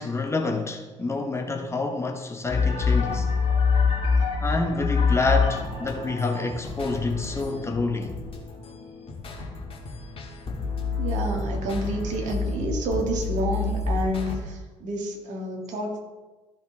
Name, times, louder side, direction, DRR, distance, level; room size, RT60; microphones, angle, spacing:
voice 1, 0.0-3.3 4.4-8.1, left 3 dB, 15° left, 4 dB, 1.1 m, -28 dB
sound 1, 2.5-14.3, left 5 dB, 35° left, 2.0 m, -27 dB
voice 2, 11.0-16.0, right 1 dB, 50° right, 1 dB, 2.0 m, -29 dB
13.5 x 5.7 x 3.4 m, 1.2 s
figure-of-eight pair, 50°, 16 cm